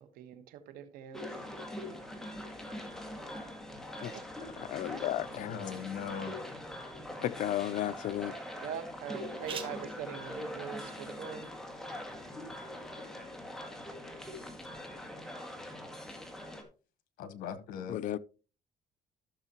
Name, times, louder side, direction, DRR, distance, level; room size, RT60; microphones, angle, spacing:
voice 1, 0.0-1.2 1.9-2.0 3.9-4.2 4.8-5.0 8.6-11.5, right 8 dB, 90° right, 1.3 m, -43 dB
sound 1, 1.1-16.6, left 1 dB, 5° left, 2.0 m, -43 dB
voice 2, 4.6-5.5 7.2-8.3 17.9-18.2, left 12 dB, 65° left, 0.5 m, -33 dB
voice 3, 5.3-6.4 17.2-18.0, left 7 dB, 85° left, 1.1 m, -39 dB
sound 2, 5.4-12.9, right 6 dB, 40° right, 1.7 m, -53 dB
14.5 x 6.6 x 2.9 m
cardioid pair, 110°, 14 cm